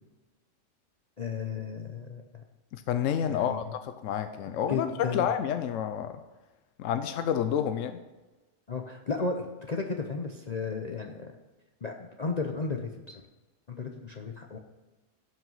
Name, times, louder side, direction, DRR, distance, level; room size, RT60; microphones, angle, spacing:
voice 1, 1.2-2.4 3.3-3.6 4.5-5.2 8.7-11.3 11.8-13.2 13.7-14.6, left 4 dB, 40° left, 3 dB, 0.7 m, -34 dB
voice 2, 2.7-6.2 6.8-8.0, left 9 dB, 75° left, 8 dB, 1.0 m, -29 dB
16.0 x 5.9 x 5.5 m, 1.2 s
omnidirectional pair, 1.3 m